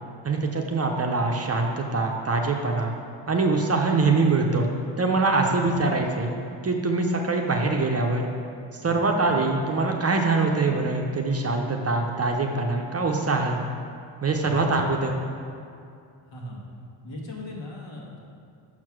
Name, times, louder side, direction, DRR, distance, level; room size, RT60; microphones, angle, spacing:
voice 1, 0.2-2.9 3.3-4.7 5.0-8.3 8.7-13.6 14.2-15.1, right 3 dB, 30° right, 2 dB, 0.7 m, -24 dB
voice 2, 14.4-15.1 16.2-16.6 17.0-18.2, equal, 60° left, -3 dB, 1.8 m, -38 dB
5.8 x 4.6 x 6.0 m, 2.4 s
cardioid pair, 75°, 50 cm